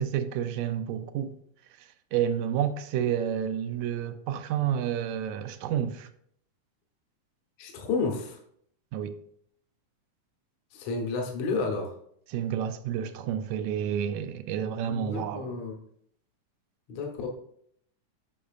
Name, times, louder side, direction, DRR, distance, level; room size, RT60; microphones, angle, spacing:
voice 1, 0.0-1.3 2.1-6.1 8.9-9.1 12.3-15.5, right 9 dB, 80° right, 1.7 m, -30 dB
voice 2, 7.6-8.4 10.7-11.9 14.9-15.8 16.9-17.3, left 4 dB, 65° left, 2.1 m, -31 dB
10.0 x 6.4 x 2.4 m
omnidirectional pair, 3.5 m